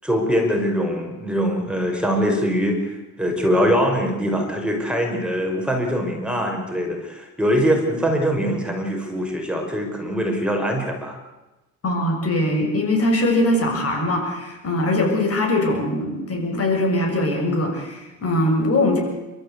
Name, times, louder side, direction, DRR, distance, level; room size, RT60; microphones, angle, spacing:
voice 1, 0.0-11.2, equal, 5° right, 1 dB, 5.8 m, -22 dB
voice 2, 11.8-19.0, left 1 dB, 50° left, 2 dB, 6.7 m, -21 dB
29.0 x 14.0 x 8.5 m, 1.1 s
cardioid pair, 90°, 30 cm